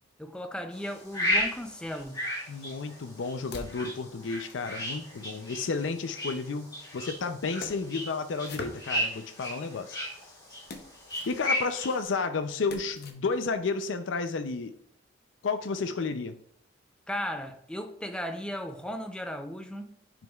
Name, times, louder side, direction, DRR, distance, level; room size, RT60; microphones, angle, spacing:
voice 1, 0.2-2.2 17.1-20.0, equal, 5° left, 0.5 m, -36 dB
sound 1, 0.7-12.0, left 1 dB, 25° left, 2.2 m, -35 dB
sound 2, 1.0-2.0 2.7-5.7 6.6-9.4 9.9-13.1, left 2 dB, 60° left, 0.8 m, -48 dB
voice 2, 2.5-10.0 11.3-14.7 15.4-16.4, left 4 dB, 90° left, 0.5 m, -32 dB
9.1 x 5.1 x 2.3 m
head